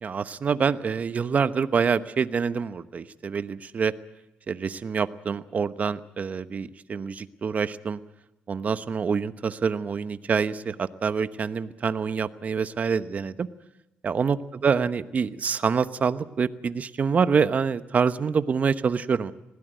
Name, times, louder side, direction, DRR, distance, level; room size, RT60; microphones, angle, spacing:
voice 1, 0.0-3.9 4.5-8.0 8.5-13.5 14.0-19.3, right 6 dB, 40° right, 13 dB, 1.0 m, -26 dB
20.5 x 16.5 x 9.2 m, 0.97 s
cardioid pair, 95°, 4 cm